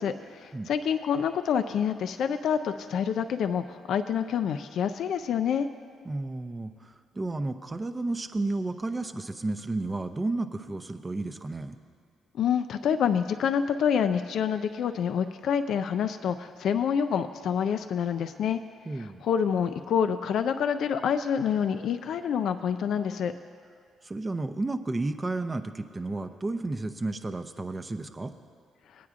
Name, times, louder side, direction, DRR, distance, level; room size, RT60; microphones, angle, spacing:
voice 1, 0.0-5.7 12.3-18.6 19.0-23.3, left 7 dB, 70° left, 9 dB, 0.4 m, -27 dB
voice 2, 6.1-11.8 18.9-19.2 24.0-28.3, right 2 dB, 20° right, 7 dB, 0.6 m, -32 dB
20.0 x 9.3 x 2.5 m, 2.3 s
cardioid pair, 90°, 0 cm